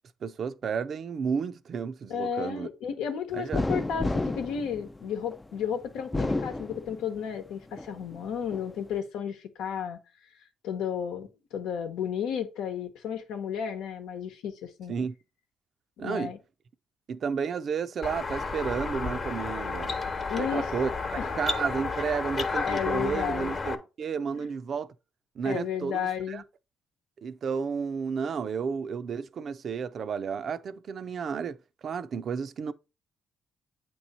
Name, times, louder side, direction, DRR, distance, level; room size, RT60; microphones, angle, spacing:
voice 1, 0.2-2.7 3.3-3.6 14.9-15.2 16.0-16.3 17.1-20.0 20.3-20.9 21.3-24.9 25.4-26.4 27.2-32.7, right 6 dB, 55° right, 0.5 m, -32 dB
voice 2, 2.1-10.0 10.6-14.9 16.0-16.4 20.3-20.7 21.2-21.3 22.6-23.5 24.3-24.4 25.4-26.4, left 8 dB, 90° left, 1.0 m, -33 dB
sound 1, 3.5-5.4 6.0-7.3 7.8-8.7, left 2 dB, 15° left, 0.3 m, -31 dB
sound 2, 18.0-23.8, left 4 dB, 40° left, 1.0 m, -32 dB
8.4 x 3.1 x 4.1 m
cardioid pair, 90°, 0 cm